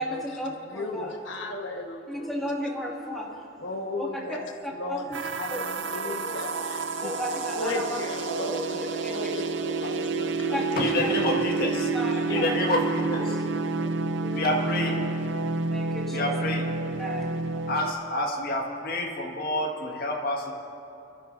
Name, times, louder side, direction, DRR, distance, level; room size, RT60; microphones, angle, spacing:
voice 1, 0.0-1.1 2.1-3.5 4.0-4.1 4.6-5.2 5.5-5.6 6.0-6.4 7.0-8.0 8.3-8.7 9.0-9.3 10.5-11.4 11.9-12.6 13.2-13.4 14.2-14.6 15.7-16.3 17.0-17.7, equal, ahead, -4 dB, 2.0 m, -34 dB
voice 2, 0.6-2.7 3.6-4.5 4.7-7.1 7.6-11.7 12.1-12.6 13.7-13.9, left 2 dB, 80° left, 3 dB, 1.3 m, -36 dB
sound 1, 5.1-17.9, right 3 dB, 80° right, 0.6 m, -29 dB
voice 3, 10.8-11.9 12.3-13.3 14.3-15.0 16.1-16.7 17.7-20.5, left 1 dB, 55° left, 0 dB, 1.7 m, -28 dB
24.0 x 13.0 x 2.6 m, 2.6 s
head